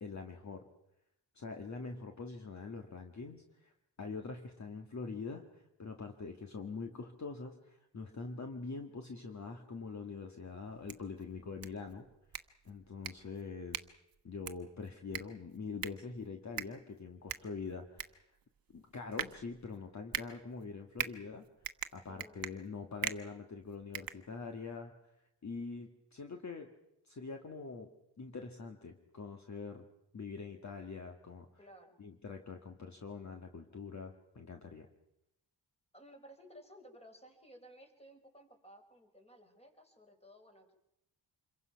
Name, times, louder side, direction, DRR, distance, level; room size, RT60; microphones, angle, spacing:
voice 1, 0.0-0.7 1.4-3.7 4.0-12.1 12.7-13.8 14.2-18.2 18.7-21.5 21.9-24.9 25.4-26.7 27.0-27.9 28.2-29.9 30.1-31.5 32.0-34.9, left 4 dB, 40° left, 5 dB, 1.8 m, -44 dB
sound 1, 10.7-24.8, right 8 dB, 50° right, 1.2 m, -44 dB
voice 2, 22.1-22.5 31.6-32.0 35.9-40.7, equal, 15° left, 4 dB, 4.0 m, -57 dB
27.0 x 22.5 x 5.8 m, 0.84 s
cardioid pair, 100°, 43 cm